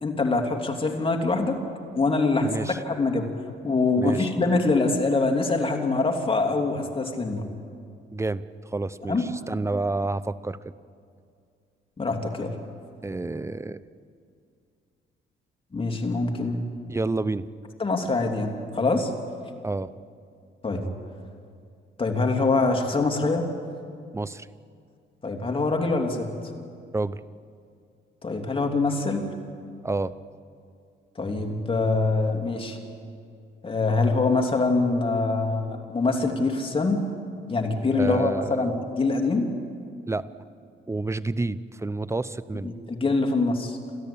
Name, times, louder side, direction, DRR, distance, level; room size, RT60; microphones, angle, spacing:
voice 1, 0.0-1.6 1.9-2.5 2.8-3.3 3.6-7.4 9.1-9.3 12.0-12.5 15.7-16.6 17.8-19.1 20.6-20.8 22.0-23.5 25.2-26.3 28.2-29.3 31.2-32.8 33.6-37.0 37.5-39.5 42.6-43.8, left 3 dB, 25° left, 3 dB, 3.1 m, -24 dB
voice 2, 2.4-2.8 4.0-4.3 8.1-10.6 13.0-13.8 16.9-17.5 19.6-19.9 24.1-24.5 26.9-27.2 29.8-30.1 38.0-38.7 40.1-40.3 40.9-42.7, right 2 dB, 15° right, 15 dB, 0.7 m, -29 dB
29.0 x 13.5 x 8.7 m, 2.3 s
cardioid pair, 90°, 20 cm